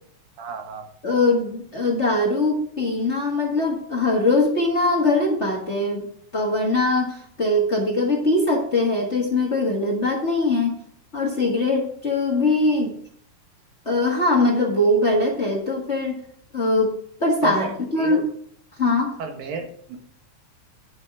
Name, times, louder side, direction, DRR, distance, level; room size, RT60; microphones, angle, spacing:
voice 1, 0.4-0.9 15.1-15.2 17.4-18.2 19.2-20.0, right 4 dB, 90° right, 4 dB, 3.2 m, -32 dB
voice 2, 1.0-10.8 11.1-13.0 13.8-16.2 16.5-18.2 18.8-19.2, left 2 dB, 35° left, -1 dB, 1.0 m, -22 dB
10.0 x 6.1 x 4.8 m, 0.63 s
omnidirectional pair, 3.9 m